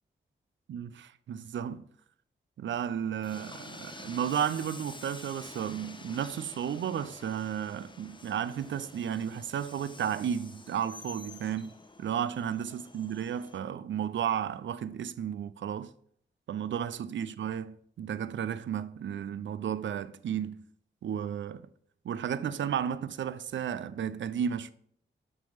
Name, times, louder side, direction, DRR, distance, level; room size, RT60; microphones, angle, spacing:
voice 1, 0.7-1.8 2.6-11.7 12.0-15.9 16.5-20.6 21.0-21.7 22.0-24.7, right 8 dB, 70° right, 0.4 m, -33 dB
Train, 3.2-13.6, left 2 dB, 25° left, 0.8 m, -49 dB
6.2 x 3.4 x 5.5 m
cardioid pair, 45°, 20 cm